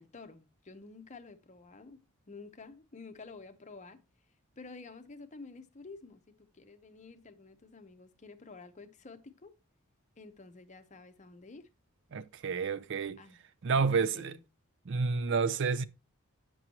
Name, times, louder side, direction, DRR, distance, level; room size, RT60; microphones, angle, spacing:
voice 1, 0.0-2.0 2.3-4.0 4.6-9.5 10.2-11.7 13.2-13.4 13.7-14.4, left 3 dB, 35° left, 0.7 m, -50 dB
voice 2, 12.1-13.2 13.6-14.3 14.9-15.8, right 5 dB, 55° right, 0.5 m, -29 dB
7.8 x 6.1 x 2.9 m
head